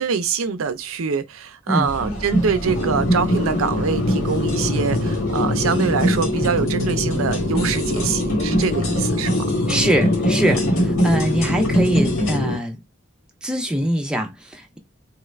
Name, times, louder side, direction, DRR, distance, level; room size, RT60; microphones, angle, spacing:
voice 1, 0.0-9.4, right 5 dB, 85° right, 0.5 m, -24 dB
sound 1, 1.8-12.4, right 1 dB, 85° left, 1.8 m, -25 dB
sound 2, 2.7-12.6, left 2 dB, 55° left, 0.9 m, -23 dB
voice 2, 9.7-12.8 13.4-14.8, right 1 dB, 5° right, 0.4 m, -23 dB
3.0 x 2.4 x 3.1 m
head